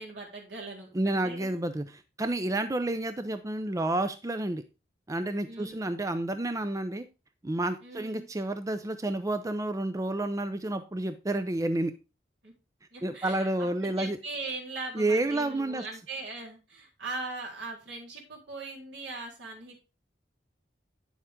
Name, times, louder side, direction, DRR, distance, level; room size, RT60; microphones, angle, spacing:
voice 1, 0.0-1.6 5.4-5.9 7.8-8.3 12.4-12.5 12.9-19.8, right 3 dB, 75° right, -2 dB, 3.9 m, -40 dB
voice 2, 0.9-4.6 5.1-7.1 7.4-11.9 13.0-14.2 14.9-15.8, right 2 dB, 20° right, 10 dB, 0.5 m, -30 dB
9.7 x 7.2 x 3.6 m, 0.30 s
head